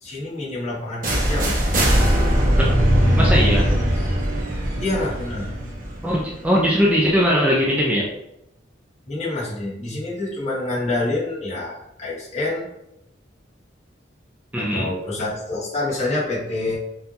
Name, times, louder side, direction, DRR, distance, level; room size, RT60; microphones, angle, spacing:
voice 1, 0.0-1.9 4.8-5.5 9.1-12.7 14.6-16.8, left 2 dB, 40° left, -6 dB, 1.6 m, -27 dB
sound 1, 1.0-6.9, equal, 50° right, 1.1 m, -20 dB
voice 2, 3.1-3.7 6.0-8.1 14.5-14.9, equal, 10° right, -4 dB, 0.5 m, -20 dB
5.7 x 2.7 x 2.7 m, 0.82 s
head